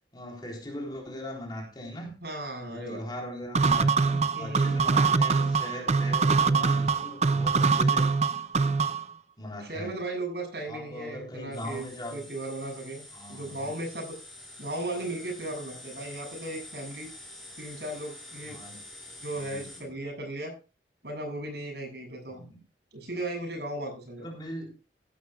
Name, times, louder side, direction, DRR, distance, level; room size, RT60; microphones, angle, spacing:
voice 1, 0.1-2.1 2.7-8.1 9.4-10.0 10.7-12.3 13.1-13.7 18.5-18.8 19.4-19.8 22.3-22.6 24.2-24.7, equal, 25° left, 0 dB, 3.7 m, -40 dB
voice 2, 2.2-3.0 4.3-4.9 9.6-11.8 12.1-14.2 14.6-17.1 17.6-18.6 19.2-20.5 21.0-22.4 22.9-24.3, right 1 dB, 65° right, 1 dB, 7.4 m, -36 dB
sound 1, 3.5-9.1, right 4 dB, 35° right, 0.5 m, -23 dB
sound 2, 11.5-19.8, left 1 dB, ahead, 4.8 m, -47 dB
16.0 x 12.0 x 2.4 m, 0.33 s
head